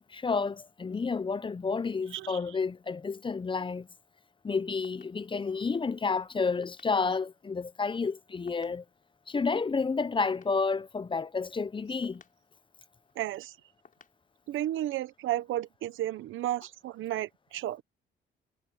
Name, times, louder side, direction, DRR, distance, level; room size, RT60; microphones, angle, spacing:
voice 1, 0.0-3.9 4.4-8.8 9.3-12.2, left 4 dB, 25° left, 0.7 m, -30 dB
sound 1, 4.5-15.1, left 6 dB, 45° left, 6.8 m, -65 dB
voice 2, 13.1-13.6 14.5-17.8, right 13 dB, 80° right, 1.0 m, -33 dB
cardioid pair, 90°, 20 cm